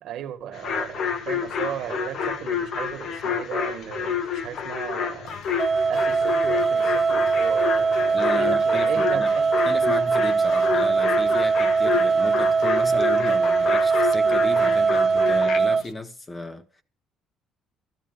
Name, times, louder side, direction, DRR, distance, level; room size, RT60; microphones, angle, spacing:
voice 1, 0.0-5.4 5.9-9.5, right 10 dB, 65° right, 1.9 m, -35 dB
sound 1, 0.5-15.6, left 7 dB, 50° left, 1.4 m, -29 dB
sound 2, 5.3-15.9, left 9 dB, 75° left, 1.7 m, -49 dB
sound 3, 5.6-15.8, right 5 dB, 20° right, 0.6 m, -21 dB
voice 2, 8.1-9.3 9.7-16.8, left 2 dB, 20° left, 1.2 m, -34 dB
14.5 x 12.0 x 5.5 m
cardioid pair, 135°, 0 cm